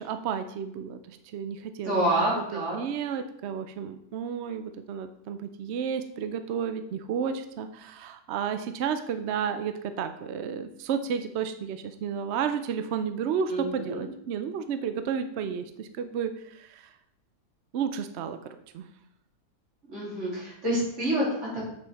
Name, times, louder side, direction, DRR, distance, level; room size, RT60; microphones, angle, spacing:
voice 1, 0.0-2.0 2.5-16.9 17.7-18.9, right 7 dB, 70° right, 10 dB, 0.6 m, -32 dB
voice 2, 1.8-2.8 13.5-14.1 19.8-21.7, right 1 dB, 45° right, -7 dB, 3.9 m, -28 dB
7.5 x 6.4 x 4.1 m, 0.74 s
omnidirectional pair, 1.7 m